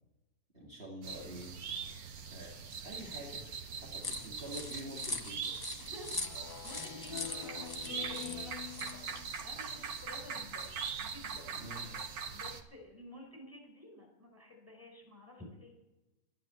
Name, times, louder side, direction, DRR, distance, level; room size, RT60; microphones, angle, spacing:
voice 1, 0.5-1.5 2.3-2.5 2.8-3.4 3.8-5.5 11.6-11.9, equal, 40° right, -5 dB, 2.8 m, -46 dB
sound 1, 1.0-12.6, right 6 dB, 75° right, 1.5 m, -42 dB
sound 2, 4.0-9.3, left 3 dB, 25° left, 0.5 m, -42 dB
voice 2, 5.8-6.2 6.5-9.1 9.4-11.5 12.3-15.7, left 1 dB, 10° right, 0 dB, 5.3 m, -52 dB
Speech synthesizer, 6.1-9.7, left 12 dB, 85° left, 1.2 m, -46 dB
12.0 x 11.5 x 7.7 m, 1.0 s
omnidirectional pair, 1.6 m